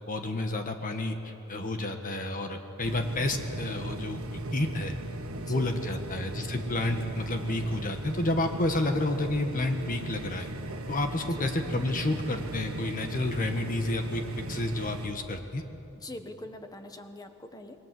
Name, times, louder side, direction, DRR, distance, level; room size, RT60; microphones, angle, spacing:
voice 1, 0.1-4.2 4.5-5.0 5.5-10.5 10.9-14.2 14.5-15.6, left 1 dB, 40° left, 5 dB, 1.5 m, -30 dB
sound 1, 2.8-15.1, right 1 dB, 75° right, 1.7 m, -37 dB
voice 2, 5.4-5.9 11.2-11.5 15.9-17.9, left 1 dB, 15° left, 7 dB, 1.4 m, -44 dB
27.0 x 21.5 x 7.7 m, 2.9 s
head